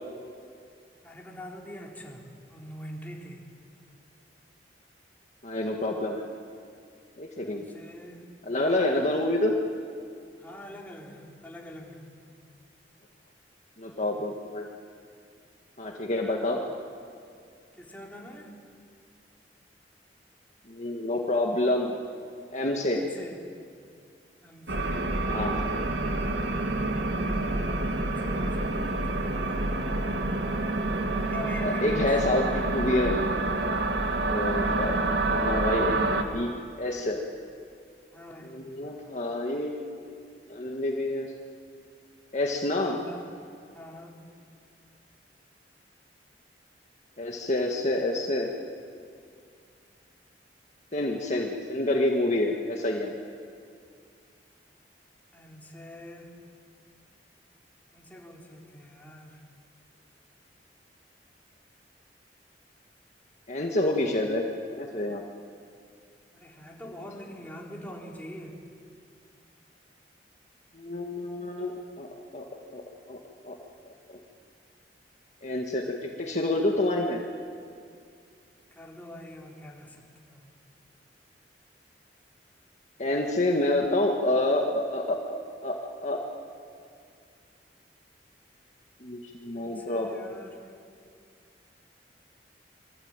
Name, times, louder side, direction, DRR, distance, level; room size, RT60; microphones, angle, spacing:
voice 1, 1.0-3.4 7.4-8.3 10.4-12.1 17.8-18.5 22.9-23.5 24.4-25.2 26.9-29.7 31.0-32.1 38.1-38.6 42.7-43.3 43.7-44.2 55.3-56.3 57.9-59.4 66.3-68.6 78.7-80.4 89.5-90.7, equal, 10° left, -2 dB, 3.8 m, -44 dB
voice 2, 5.4-6.2 7.2-7.6 8.4-9.6 13.8-14.7 15.8-16.6 20.7-22.0 22.5-23.0 25.3-25.6 31.6-33.2 34.3-36.5 36.8-37.2 38.4-40.2 40.5-41.3 42.3-43.0 47.2-48.5 50.9-53.1 63.5-64.4 64.7-65.2 70.7-72.1 72.3-72.5 72.7-72.8 73.1-73.2 73.4-73.6 75.4-75.9 76.2-77.2 83.0-85.8 86.0-86.2 89.0-90.4, left 1 dB, 45° left, 0 dB, 1.8 m, -28 dB
sound 1, 24.7-36.2, right 2 dB, 75° right, 2.2 m, -28 dB
27.5 x 23.5 x 9.0 m, 2.3 s
head